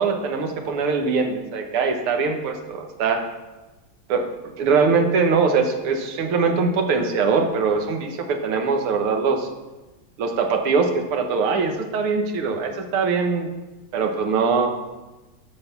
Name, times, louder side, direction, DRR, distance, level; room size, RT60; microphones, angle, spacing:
voice 1, 0.0-3.3 4.1-4.3 4.6-9.5 10.2-13.5 13.9-14.7, right 5 dB, 90° right, 5 dB, 2.0 m, -22 dB
12.5 x 5.6 x 5.9 m, 1.1 s
omnidirectional pair, 2.3 m